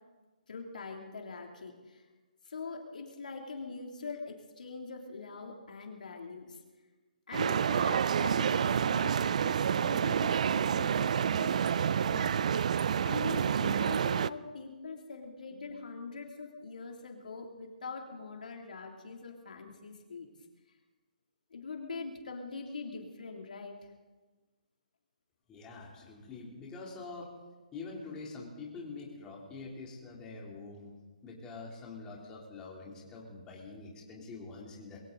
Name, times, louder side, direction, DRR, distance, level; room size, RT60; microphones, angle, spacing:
voice 1, 0.5-2.0 2.4-6.6 7.3-12.5 12.7-20.3 21.5-23.8, left 4 dB, 70° left, 1 dB, 2.9 m, -43 dB
sound 1, 7.3-14.3, right 8 dB, 55° right, 0.4 m, -28 dB
voice 2, 25.5-27.3 27.7-30.9 31.2-35.0, left 3 dB, 15° left, -3 dB, 3.3 m, -45 dB
22.0 x 16.0 x 3.9 m, 1.3 s
hypercardioid pair, 155°, 5 cm